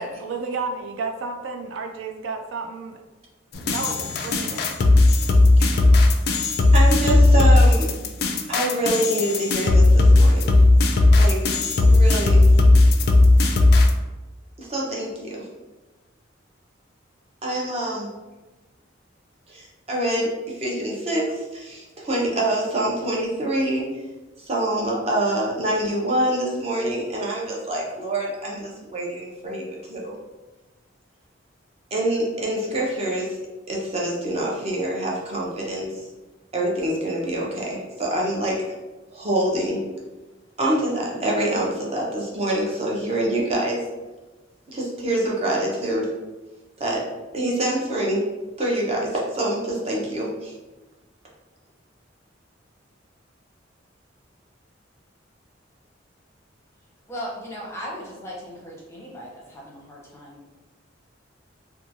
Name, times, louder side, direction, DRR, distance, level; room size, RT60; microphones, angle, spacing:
voice 1, 0.0-3.0 3.6-4.7, right 4 dB, 80° right, 4 dB, 0.3 m, -32 dB
sound 1, 3.5-13.9, left 2 dB, 55° left, 0.3 m, -16 dB
voice 2, 6.7-7.9 8.5-10.5 11.2-11.4 11.8-12.4 14.6-15.5 17.4-18.1 19.5-20.3 20.5-23.9 24.4-30.1 31.9-33.3 33.7-36.1 36.5-38.6 39.1-39.8 40.6-43.8 44.7-46.1 46.8-47.0 47.3-48.2 48.6-50.5, right 1 dB, 35° right, -3 dB, 0.6 m, -25 dB
voice 3, 57.1-60.4, equal, 15° left, -4 dB, 0.6 m, -37 dB
2.8 x 2.2 x 2.6 m, 1.2 s
head